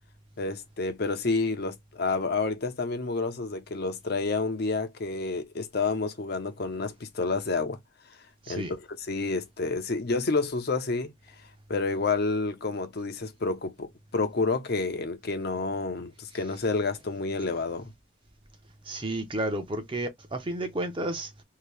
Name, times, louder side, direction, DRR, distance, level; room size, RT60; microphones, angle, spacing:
voice 1, 0.4-7.8 8.5-11.1 11.7-17.9, left 3 dB, 55° left, 0.7 m, -29 dB
voice 2, 18.9-21.3, right 1 dB, 25° right, 0.7 m, -31 dB
2.8 x 2.8 x 3.2 m
head